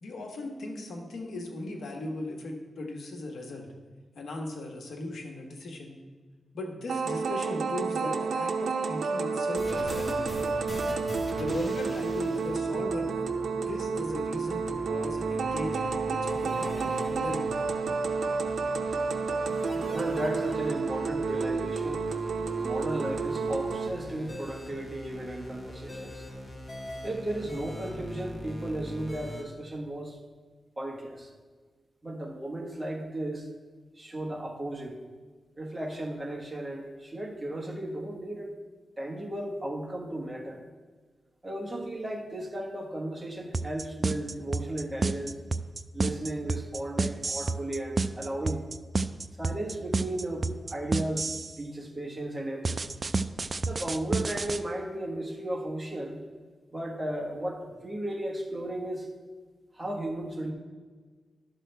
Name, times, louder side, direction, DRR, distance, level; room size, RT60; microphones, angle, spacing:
voice 1, 0.0-3.7 4.1-6.0 6.5-10.3 11.3-13.3 13.6-17.5, left 2 dB, 90° left, 2 dB, 1.2 m, -38 dB
sound 1, 6.9-23.9, right 4 dB, 85° right, 0.5 m, -30 dB
sound 2, 9.5-29.4, left 1 dB, 25° left, 1.3 m, -41 dB
voice 2, 19.9-22.1 22.6-26.2 27.0-30.2 30.8-31.3 32.0-33.5 34.0-35.0 35.6-38.5 39.0-40.6 41.4-45.3 45.9-48.7 49.4-51.3 51.6-53.0 53.6-56.2 56.7-59.1 59.7-60.5, right 1 dB, 15° right, 0 dB, 1.3 m, -35 dB
sound 3, 43.5-51.5 52.6-54.6, right 3 dB, 35° right, 0.3 m, -29 dB
12.0 x 6.2 x 3.4 m, 1.4 s
wide cardioid pair, 140°, 0 cm